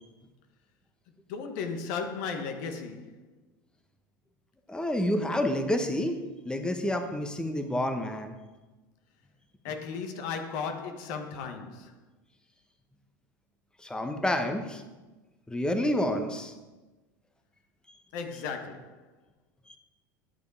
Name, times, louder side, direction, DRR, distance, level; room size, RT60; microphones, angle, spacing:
voice 1, 1.3-3.2 9.6-11.9 18.1-19.0, left 5 dB, 65° left, 1.3 m, -35 dB
voice 2, 4.7-6.2 6.4-8.3 13.8-14.8 15.5-16.5 19.7-19.8, left 1 dB, 5° left, 1.0 m, -29 dB
11.0 x 6.8 x 4.8 m
hypercardioid pair, 85°, 11 cm